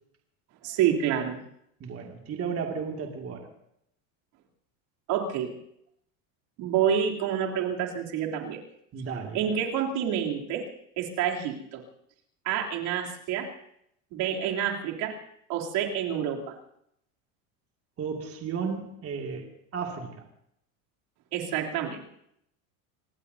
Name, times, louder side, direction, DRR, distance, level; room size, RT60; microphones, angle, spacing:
voice 1, 0.6-1.4 5.1-5.6 6.6-8.6 9.3-10.7 11.0-11.8 12.4-13.5 14.1-15.1 15.5-16.5 21.3-22.0, right 9 dB, 60° right, 0 dB, 3.3 m, -28 dB
voice 2, 1.8-3.5 8.9-9.4 18.0-19.5 19.7-20.2, right 6 dB, 35° right, 1 dB, 2.4 m, -34 dB
26.0 x 19.5 x 2.8 m, 0.75 s
supercardioid pair, 125°, 42 cm